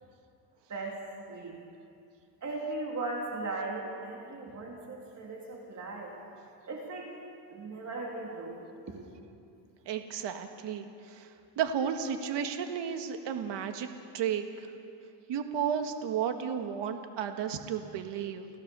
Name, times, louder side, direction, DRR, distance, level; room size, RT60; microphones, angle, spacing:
voice 1, 0.7-1.6 2.4-6.2 6.7-7.1 7.5-8.6 8.9-9.0, right 2 dB, 35° right, -1 dB, 3.3 m, -38 dB
voice 2, 9.9-13.9 14.1-14.7 15.3-18.5, right 8 dB, 60° right, 6 dB, 1.8 m, -33 dB
30.0 x 16.0 x 6.9 m, 2.5 s
cardioid pair, 125°, 47 cm